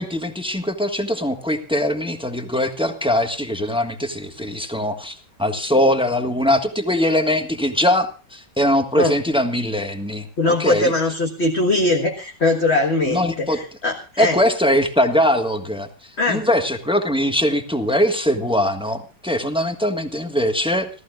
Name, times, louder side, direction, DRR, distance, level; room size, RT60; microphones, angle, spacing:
voice 1, 0.0-10.3 10.6-10.9 13.1-13.6 14.2-15.9 16.3-20.9, left 1 dB, 5° right, 7 dB, 1.2 m, -21 dB
voice 2, 10.4-14.4 16.2-16.5, left 2 dB, 35° left, 3 dB, 1.7 m, -21 dB
27.5 x 14.5 x 2.5 m, 0.32 s
omnidirectional pair, 2.1 m